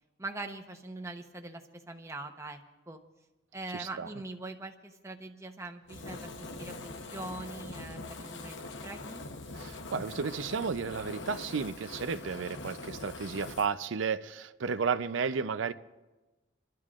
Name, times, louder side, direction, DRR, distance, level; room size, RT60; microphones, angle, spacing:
voice 1, 0.2-2.6 2.9-3.0 3.5-9.2, right 2 dB, 15° right, 5 dB, 0.8 m, -42 dB
Fire, 5.9-13.7, left 2 dB, 70° left, 0.9 m, -43 dB
voice 2, 9.5-15.7, right 5 dB, 80° right, 14 dB, 0.5 m, -33 dB
29.0 x 12.5 x 2.4 m, 1.1 s
head